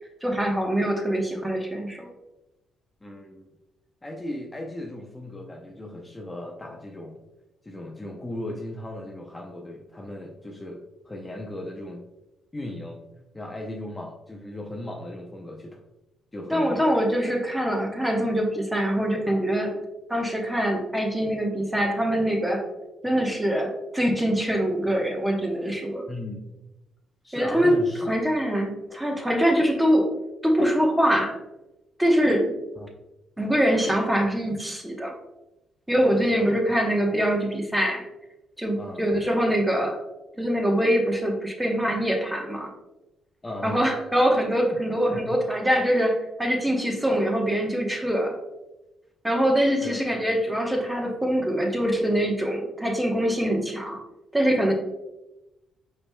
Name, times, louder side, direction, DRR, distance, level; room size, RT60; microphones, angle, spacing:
voice 1, 0.2-2.1 16.5-19.8 20.1-22.6 23.0-26.0 27.3-27.7 28.1-30.1 30.4-31.4 32.0-32.5 33.4-35.1 35.9-38.0 38.6-40.0 40.4-42.7 43.6-48.4 49.2-54.0 54.3-54.7, equal, 10° right, 1 dB, 0.9 m, -24 dB
voice 2, 3.0-3.5 4.0-7.2 7.6-12.0 12.5-13.0 13.3-15.8 16.3-17.0 26.1-26.6 27.2-28.1 32.8-32.9 36.3-36.5 38.8-39.0 43.4-44.1 44.7-44.8 45.1-45.4 49.8-49.9, left 1 dB, 20° left, 0 dB, 0.6 m, -37 dB
5.0 x 4.4 x 2.2 m, 0.97 s
cardioid pair, 90°, 0 cm